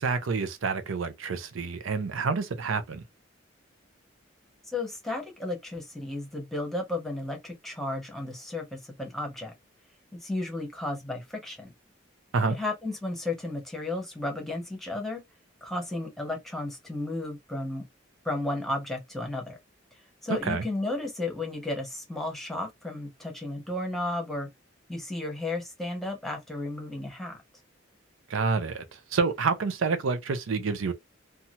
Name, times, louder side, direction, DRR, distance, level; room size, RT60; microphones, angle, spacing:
voice 1, 0.0-3.0 12.3-12.6 20.4-20.6 28.3-30.9, right 4 dB, 85° right, 0.5 m, -28 dB
voice 2, 4.6-9.5 10.2-11.7 12.5-15.2 15.6-17.8 18.2-19.6 20.2-24.5 24.9-27.4, left 2 dB, ahead, 0.8 m, -33 dB
2.8 x 2.3 x 2.7 m
head